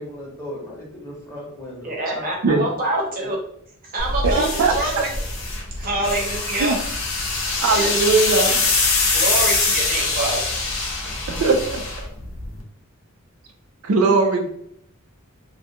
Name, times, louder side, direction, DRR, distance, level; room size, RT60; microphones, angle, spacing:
voice 1, 0.0-2.3 3.2-3.3, left 1 dB, 15° left, -4 dB, 0.7 m, -36 dB
voice 2, 1.8-3.4 3.8-5.1 5.8-6.8 7.7-8.5 9.1-10.4, right 2 dB, 40° right, -2 dB, 0.7 m, -26 dB
sound 1, 4.0-12.6, left 3 dB, 65° left, 0.6 m, -23 dB
voice 3, 4.2-4.7 6.6-6.8 7.6-8.6 11.3-11.8 13.8-14.5, right 3 dB, 75° right, 3 dB, 0.4 m, -19 dB
2.3 x 2.1 x 2.7 m, 0.71 s
head